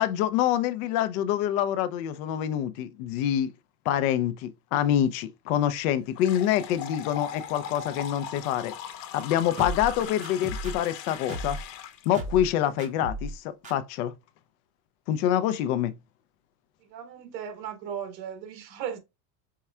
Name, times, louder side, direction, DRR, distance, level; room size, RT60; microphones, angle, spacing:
voice 1, 0.0-3.5 3.9-8.7 9.1-11.6 12.1-14.1 15.1-15.9, left 11 dB, 60° left, 0.6 m, -26 dB
sound 1, 6.2-12.1, left 9 dB, 75° left, 1.1 m, -39 dB
sound 2, 9.6-11.7 12.1-12.5 12.8-13.4 13.6-13.7, right 1 dB, 15° right, 0.6 m, -35 dB
voice 2, 16.8-19.0, right 8 dB, 85° right, 1.3 m, -36 dB
4.7 x 4.3 x 2.3 m
supercardioid pair, 160°, 49 cm